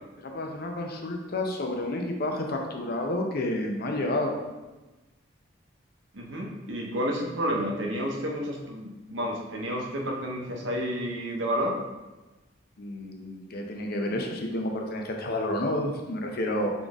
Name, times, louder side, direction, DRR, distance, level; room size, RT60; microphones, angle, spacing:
voice 1, 0.2-4.4 12.8-16.7, left 1 dB, 55° left, 2 dB, 0.7 m, -30 dB
voice 2, 6.1-11.7, equal, 80° right, 0 dB, 0.8 m, -30 dB
3.9 x 3.7 x 3.5 m, 1.1 s
head